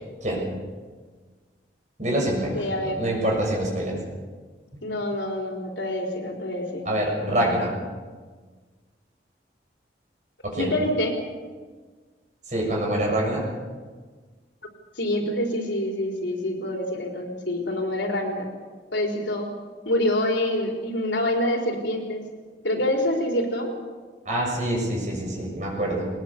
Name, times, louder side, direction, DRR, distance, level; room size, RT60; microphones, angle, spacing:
voice 1, 2.0-4.0 6.8-7.7 10.4-10.7 12.5-13.4 24.2-26.1, right 1 dB, 40° right, -1 dB, 6.8 m, -25 dB
voice 2, 2.5-3.0 4.8-6.9 10.6-11.2 15.0-18.5 18.9-19.5 19.9-22.2 22.6-23.7, left 1 dB, 90° left, 1 dB, 4.1 m, -26 dB
21.5 x 20.0 x 6.7 m, 1.5 s
head